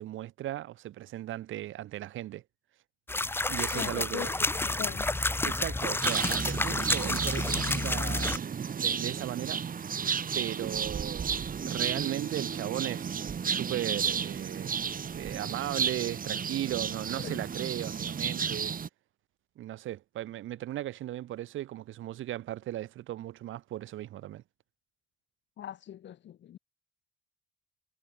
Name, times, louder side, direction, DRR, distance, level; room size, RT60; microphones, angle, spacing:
voice 1, 0.0-2.4 3.5-4.3 5.4-8.4 8.8-9.6 10.3-11.4 11.6-13.2 13.5-14.8 15.1-18.7 19.6-24.4, right 14 dB, 80° right, 3.0 m, -37 dB
sound 1, 3.1-8.4, left 2 dB, 10° left, 1.0 m, -30 dB
voice 2, 3.7-5.1 17.2-17.4 25.6-26.6, left 11 dB, 65° left, 1.6 m, -40 dB
sound 2, 6.0-18.9, right 7 dB, 45° right, 2.8 m, -33 dB
cardioid pair, 90°, 20 cm